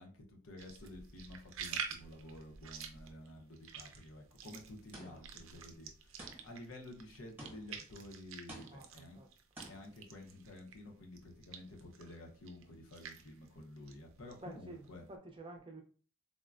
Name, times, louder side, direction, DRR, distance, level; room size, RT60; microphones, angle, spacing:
voice 1, 0.0-9.2 9.7-15.0, left 1 dB, 80° left, 1 dB, 0.8 m, -51 dB
sound 1, 0.6-10.9 11.1-15.1, right 7 dB, 80° right, 0.4 m, -48 dB
sound 2, 4.9-5.4 6.2-6.7 7.4-7.9 8.5-9.0 9.5-10.0, right 1 dB, 10° right, 0.9 m, -52 dB
voice 2, 8.7-9.3 14.4-14.8 15.1-15.8, right 2 dB, 25° right, 2 dB, 0.5 m, -50 dB
3.7 x 2.1 x 2.4 m, 0.41 s
head